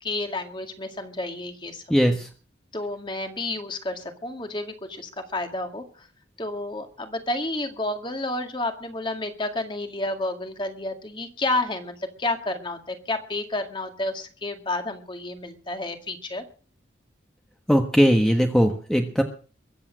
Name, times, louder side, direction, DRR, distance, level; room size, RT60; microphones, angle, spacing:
voice 1, 0.0-1.8 2.7-6.1 6.4-16.4, left 2 dB, 25° left, 6 dB, 2.0 m, -30 dB
voice 2, 1.9-2.3 17.7-19.2, equal, 5° left, 4 dB, 1.3 m, -19 dB
22.5 x 8.6 x 6.3 m, 0.39 s
head